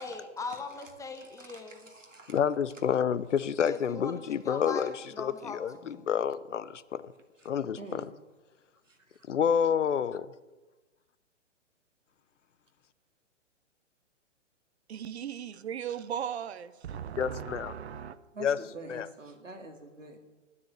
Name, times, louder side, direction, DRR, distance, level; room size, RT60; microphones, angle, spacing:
voice 1, 0.0-1.9 3.6-6.0, left 3 dB, 10° left, 1.1 m, -40 dB
voice 2, 1.2-2.4 7.4-7.5 7.8-8.1 8.8-9.3 18.3-20.2, right 3 dB, 90° right, 2.2 m, -47 dB
voice 3, 2.3-7.1 7.4-8.0 9.3-10.3 17.2-17.7 18.4-18.6 18.9-19.1, left 8 dB, 70° left, 0.7 m, -29 dB
voice 4, 14.9-18.2, right 9 dB, 60° right, 0.9 m, -37 dB
10.0 x 9.5 x 8.1 m
figure-of-eight pair, 120°, 37 cm